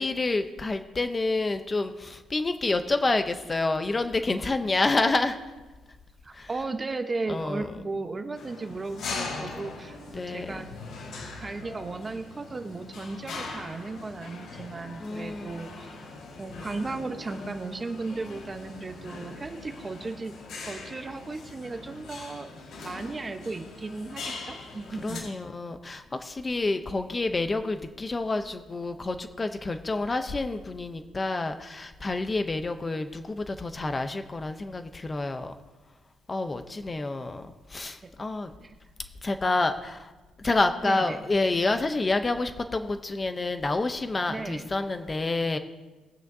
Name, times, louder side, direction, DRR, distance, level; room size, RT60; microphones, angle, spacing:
voice 1, 0.0-5.4 6.3-6.5 7.3-7.8 10.1-10.6 15.0-15.6 25.0-35.5 36.3-38.5 39.2-40.1 40.4-45.6, left 3 dB, 20° left, 8 dB, 0.6 m, -28 dB
voice 2, 6.2-10.7 11.4-16.0 16.4-20.3 20.7-22.5 22.8-25.2 38.0-38.1 38.6-38.8 40.8-41.2 44.3-44.7, right 3 dB, 20° right, 7 dB, 0.9 m, -35 dB
sound 1, 8.3-25.2, left 3 dB, 65° left, 4.4 m, -41 dB
20.0 x 9.1 x 2.7 m, 1.2 s
cardioid pair, 130°, 0 cm